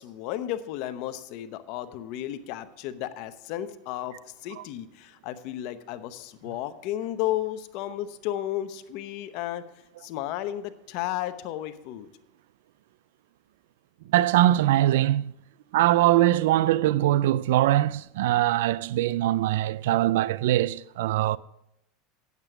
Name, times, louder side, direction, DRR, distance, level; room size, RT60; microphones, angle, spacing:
voice 1, 0.0-9.7 10.0-12.1, left 13 dB, 60° left, 0.8 m, -33 dB
voice 2, 14.1-15.3 15.7-21.4, right 14 dB, 80° right, 0.3 m, -22 dB
8.9 x 8.2 x 5.9 m
supercardioid pair, 120°, 0 cm